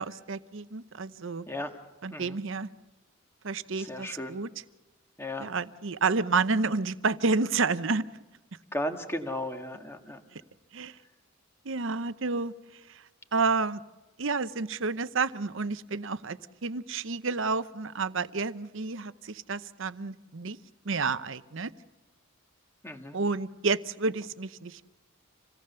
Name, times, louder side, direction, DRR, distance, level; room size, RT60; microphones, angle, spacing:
voice 1, 0.0-1.5 2.0-2.7 3.4-4.5 5.4-8.0 10.3-10.4 10.7-11.0 11.6-12.5 12.9-13.0 13.3-13.8 14.2-20.6 20.8-21.7 23.1-24.8, right 4 dB, 60° right, 14 dB, 0.8 m, -30 dB
voice 2, 3.8-4.4 5.2-5.5 8.7-10.2 22.8-23.2, left 1 dB, 10° left, 5 dB, 1.7 m, -35 dB
27.0 x 18.0 x 6.9 m, 1.1 s
head